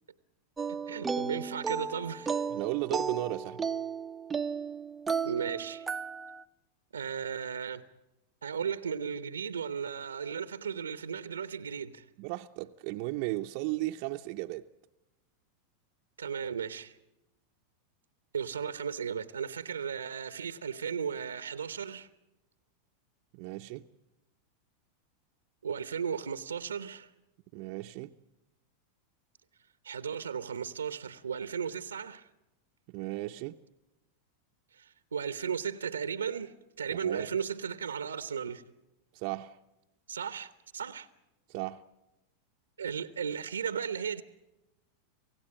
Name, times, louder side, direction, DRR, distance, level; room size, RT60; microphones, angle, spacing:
sound 1, 0.6-6.4, right 6 dB, 15° right, 0.7 m, -34 dB
voice 1, 0.7-2.4 5.2-5.9 6.9-7.8 8.4-12.1 16.2-16.9 18.3-22.1 25.6-27.1 29.8-32.3 34.7-38.6 40.1-41.1 42.8-44.2, right 7 dB, 85° right, 0.9 m, -35 dB
voice 2, 2.5-3.6 12.2-14.7 23.3-23.8 27.5-28.1 32.9-33.6 36.9-37.3 39.1-39.6 41.5-41.8, right 18 dB, 55° right, 0.7 m, -35 dB
27.0 x 16.5 x 8.8 m
hypercardioid pair, 95°, 0 cm